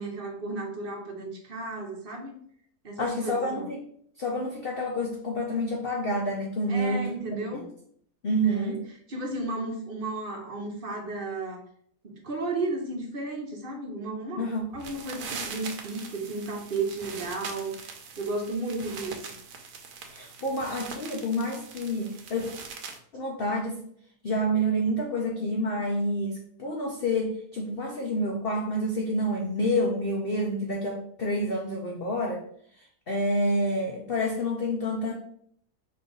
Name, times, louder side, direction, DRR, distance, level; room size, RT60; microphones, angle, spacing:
voice 1, 0.0-2.4 2.8-3.7 6.7-7.7 8.4-8.8 9.1-11.6 12.0-14.4 14.7-19.3, right 2 dB, 45° right, 1 dB, 0.8 m, -33 dB
voice 2, 3.0-3.8 4.2-7.7 8.2-8.8 14.4-14.6 20.1-22.5 23.1-23.8 24.2-32.4 32.8-35.1, equal, 55° left, 0 dB, 0.6 m, -28 dB
sound 1, 14.7-23.0, right 5 dB, 70° right, 1.2 m, -42 dB
5.2 x 2.6 x 3.8 m, 0.63 s
omnidirectional pair, 1.7 m